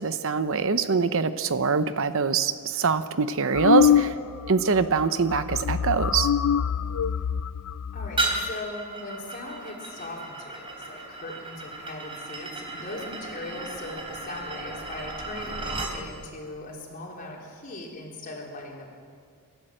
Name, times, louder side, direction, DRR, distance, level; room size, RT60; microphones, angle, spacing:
voice 1, 0.0-4.1 4.5-6.3, right 5 dB, 65° right, 11 dB, 0.8 m, -24 dB
sound 1, 3.5-4.5 4.8-5.1 5.3-8.5, left 8 dB, 75° left, 0.4 m, -24 dB
voice 2, 7.9-18.9, left 2 dB, 40° left, -2 dB, 4.2 m, -39 dB
sound 2, 8.2-16.0, right 2 dB, 25° right, 3.3 m, -34 dB
28.0 x 12.5 x 7.8 m, 2.2 s
head